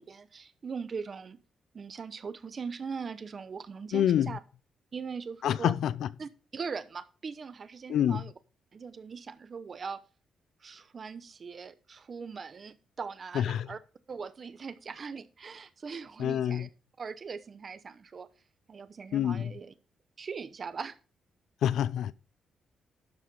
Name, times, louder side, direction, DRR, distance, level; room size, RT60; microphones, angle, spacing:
voice 1, 0.0-1.4 1.7-4.4 4.9-5.7 6.2-8.3 8.7-10.0 10.6-13.8 14.1-16.7 17.0-18.3 18.7-19.7 20.2-21.0, right 5 dB, 35° right, 0.8 m, -40 dB
voice 2, 3.9-4.4 5.4-6.1 7.9-8.2 13.3-13.7 16.2-16.7 19.1-19.5 21.6-22.1, left 10 dB, 75° left, 0.5 m, -27 dB
12.0 x 5.0 x 5.4 m
cardioid pair, 135°, 0 cm